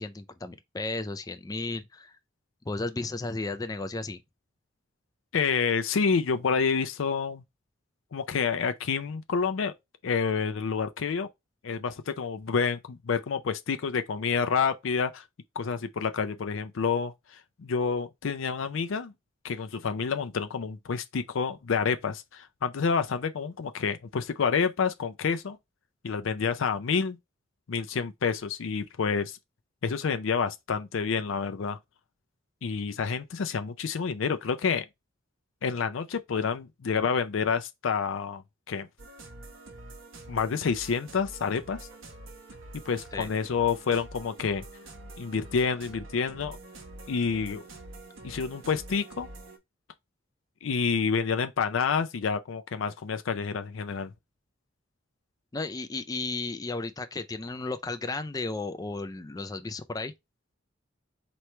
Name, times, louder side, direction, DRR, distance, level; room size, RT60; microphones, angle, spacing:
voice 1, 0.0-2.1 2.6-4.2 43.1-43.3 55.5-60.1, left 3 dB, 20° left, 0.4 m, -34 dB
voice 2, 5.3-7.4 8.1-9.7 10.0-11.3 11.6-15.2 15.6-17.1 17.6-19.1 19.4-25.6 26.0-27.2 27.7-29.4 29.8-31.8 32.6-34.9 35.6-38.4 38.7-38.9 40.3-41.8 42.9-44.6 45.2-46.6 47.1-47.6 48.2-49.3 50.6-54.1, left 5 dB, 80° left, 0.5 m, -28 dB
sound 1, 39.0-49.6, right 2 dB, 85° right, 1.2 m, -46 dB
4.4 x 3.1 x 3.1 m
head